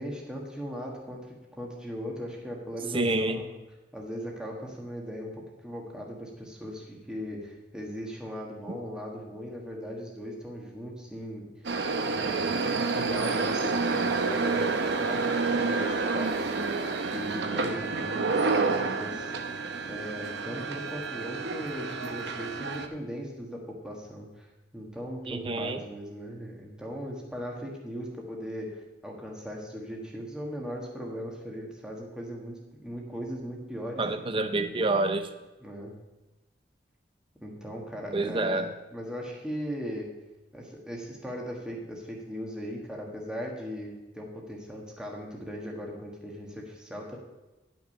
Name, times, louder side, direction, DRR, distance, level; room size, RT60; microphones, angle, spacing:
voice 1, 0.0-3.6 3.9-11.5 12.1-16.5 17.1-19.3 19.8-24.5 24.7-34.1 35.6-35.9 37.4-38.7 38.9-40.1 40.5-47.2, equal, 5° right, -2 dB, 1.4 m, -38 dB
voice 2, 2.9-3.4 25.3-25.8 34.0-35.3 38.1-38.7, right 2 dB, 30° right, 9 dB, 0.6 m, -27 dB
sound 1, 11.6-22.9, right 4 dB, 65° right, 0.8 m, -29 dB
10.5 x 6.1 x 5.4 m, 1.1 s
head